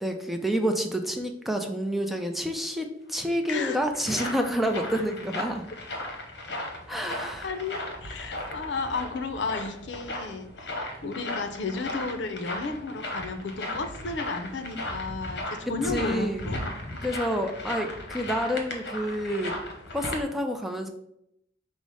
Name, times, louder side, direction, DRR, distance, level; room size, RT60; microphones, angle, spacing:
voice 1, 0.0-5.6 6.9-7.5 15.9-16.4 17.0-19.5 19.9-20.9, equal, ahead, 3 dB, 0.4 m, -28 dB
sound 1, 3.2-20.2, left 1 dB, 65° left, 1.0 m, -36 dB
voice 2, 7.4-17.2, left 4 dB, 85° left, 7 dB, 0.5 m, -33 dB
5.3 x 2.0 x 4.7 m, 0.78 s
head